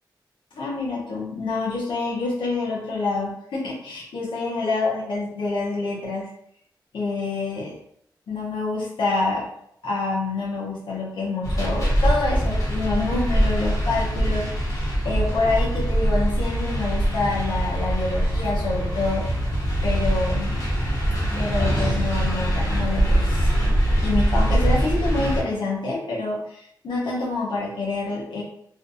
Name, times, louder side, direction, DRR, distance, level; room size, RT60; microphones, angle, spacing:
voice 1, 0.5-6.3 6.9-7.7 8.3-9.4 9.8-19.2 19.8-20.6 21.2-23.5 24.0-28.4, left 3 dB, 85° left, -4 dB, 0.7 m, -27 dB
sound 1, 11.4-25.4, equal, 45° left, 1.0 m, -23 dB
2.5 x 2.3 x 2.6 m, 0.70 s
cardioid pair, 65°, 8 cm